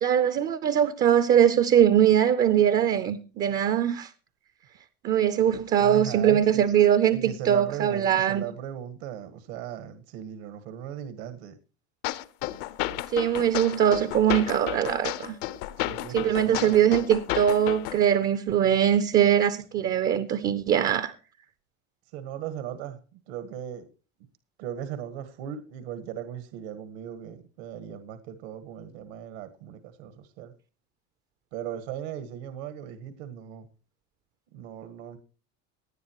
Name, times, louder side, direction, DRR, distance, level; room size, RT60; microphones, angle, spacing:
voice 1, 0.0-4.1 5.0-8.4 13.1-15.4 16.1-21.1, right 9 dB, 25° right, 0.6 m, -22 dB
voice 2, 5.8-6.6 7.1-11.6 15.8-16.8 22.1-23.9 24.6-30.5 31.5-33.7 34.5-35.2, right 10 dB, 75° right, 1.6 m, -38 dB
sound 1, 12.0-18.0, left 15 dB, 65° left, 0.9 m, -32 dB
18.0 x 10.5 x 2.9 m
cardioid pair, 175°, 32 cm